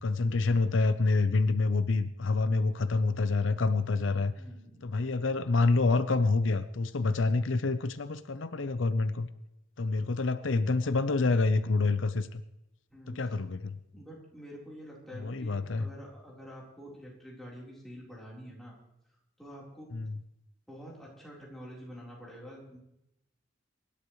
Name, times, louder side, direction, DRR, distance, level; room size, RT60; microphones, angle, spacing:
voice 1, 0.0-4.3 4.8-9.3 9.8-12.4 13.1-13.8 15.2-15.9 19.9-20.2, left 3 dB, 80° left, 12 dB, 0.7 m, -27 dB
voice 2, 4.3-4.9 12.9-13.2 13.9-18.7 19.4-19.9 20.7-22.8, equal, ahead, -5 dB, 4.0 m, -47 dB
24.0 x 11.5 x 3.2 m, 0.85 s
head